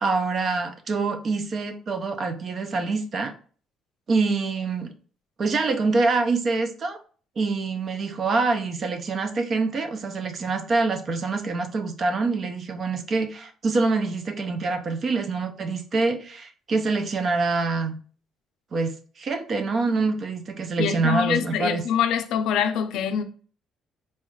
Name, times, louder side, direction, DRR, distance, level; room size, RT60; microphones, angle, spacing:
voice 1, 0.0-3.3 4.1-4.9 5.4-7.0 7.4-18.0 18.7-21.8, right 3 dB, 35° right, 0.4 m, -25 dB
voice 2, 20.8-23.2, left 8 dB, 70° left, 0.4 m, -24 dB
4.1 x 2.3 x 3.0 m
cardioid pair, 145°, 0 cm